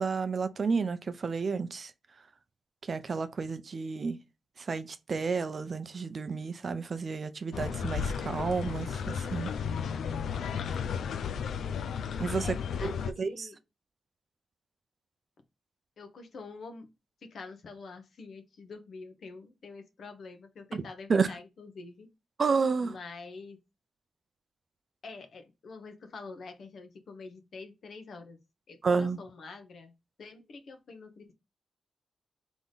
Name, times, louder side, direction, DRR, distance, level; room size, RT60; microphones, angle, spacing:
voice 1, 0.0-1.9 2.9-4.2 4.6-9.5 12.2-12.5 13.2-13.5 20.7-20.8 21.1-21.3 22.4-22.9 28.8-29.2, right 5 dB, 45° right, 0.5 m, -30 dB
sound 1, 7.5-13.1, left 7 dB, 85° left, 0.4 m, -33 dB
voice 2, 12.4-13.6 16.0-16.9 17.2-22.1 22.8-23.6 25.0-28.4 28.7-29.9 30.2-31.3, left 4 dB, 65° left, 1.1 m, -46 dB
3.8 x 3.5 x 4.0 m
wide cardioid pair, 115°, 0 cm